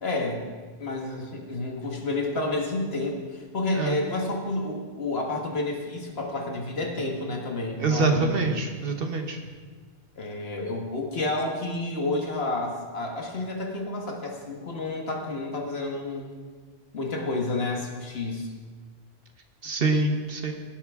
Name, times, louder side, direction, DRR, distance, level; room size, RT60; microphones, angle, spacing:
voice 1, 0.0-0.5 0.8-8.4 10.2-16.3 16.9-18.5, left 2 dB, 55° left, 1 dB, 1.7 m, -30 dB
voice 2, 7.8-9.4 19.6-20.5, right 3 dB, 50° right, 4 dB, 1.2 m, -25 dB
17.5 x 8.3 x 3.6 m, 1.5 s
omnidirectional pair, 1.2 m